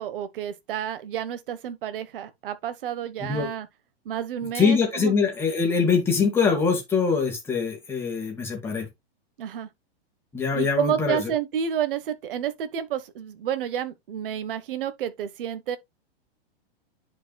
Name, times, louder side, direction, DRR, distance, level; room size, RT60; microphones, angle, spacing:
voice 1, 0.0-3.7 4.0-5.1 9.4-9.7 10.5-15.8, right 9 dB, 55° right, 1.4 m, -30 dB
voice 2, 4.5-8.9 10.3-11.3, left 5 dB, 5° left, 2.1 m, -23 dB
10.5 x 5.0 x 2.4 m
supercardioid pair, 165°, 32 cm